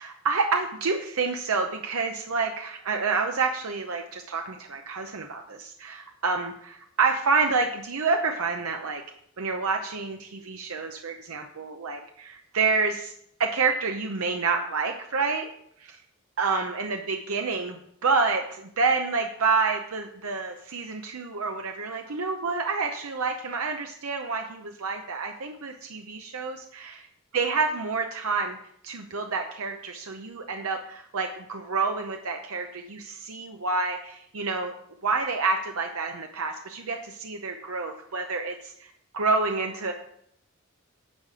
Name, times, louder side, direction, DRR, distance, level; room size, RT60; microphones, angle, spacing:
voice 1, 0.0-9.0 9.4-13.1 13.4-15.5 15.8-16.0 16.4-27.1 27.3-28.6 28.8-34.7 35.0-38.9 39.1-39.9, right 4 dB, 90° right, 4 dB, 0.8 m, -28 dB
9.4 x 5.0 x 7.4 m, 0.69 s
head